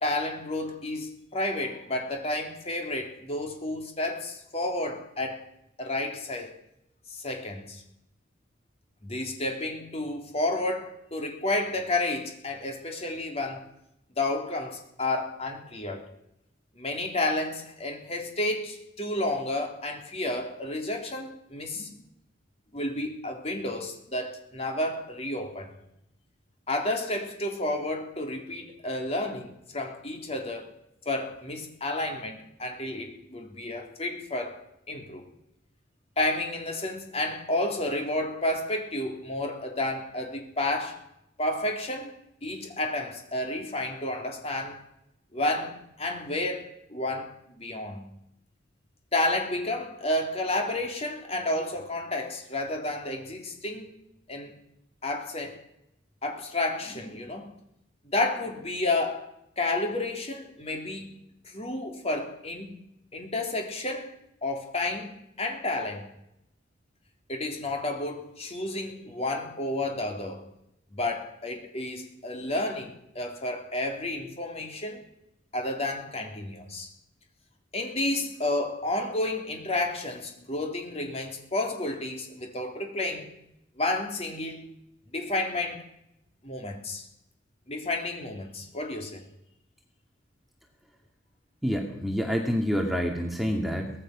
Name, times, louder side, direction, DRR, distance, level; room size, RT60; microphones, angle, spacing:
voice 1, 0.0-5.5 5.8-6.6 7.1-7.8 9.0-13.7 14.2-16.1 16.8-22.0 22.7-25.8 26.7-30.7 31.1-34.6 34.9-35.3 36.2-41.0 41.4-42.1 42.4-44.8 45.3-48.1 49.1-53.9 54.3-54.5 55.0-55.6 56.2-57.6 58.0-59.3 59.6-61.2 61.4-62.8 63.1-64.1 64.4-66.1 67.3-70.5 70.9-75.0 75.5-76.9 77.7-83.3 83.8-84.7 85.1-85.8 86.4-87.1 87.7-89.2, left 2 dB, 35° left, 3.7 m, -31 dB
voice 2, 91.6-93.9, equal, ahead, 2.1 m, -27 dB
24.0 x 18.5 x 6.2 m
head